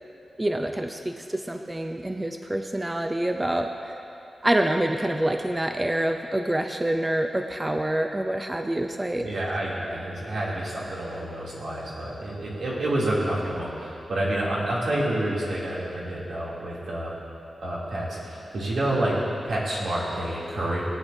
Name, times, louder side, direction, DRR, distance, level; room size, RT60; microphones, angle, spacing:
voice 1, 0.4-4.0 4.4-9.3, right 1 dB, 15° right, 5 dB, 0.4 m, -26 dB
voice 2, 9.2-17.1 17.6-19.1 19.4-20.8, right 1 dB, 80° right, -7 dB, 2.7 m, -28 dB
18.5 x 9.8 x 2.7 m, 2.8 s
wide cardioid pair, 115°, 0 cm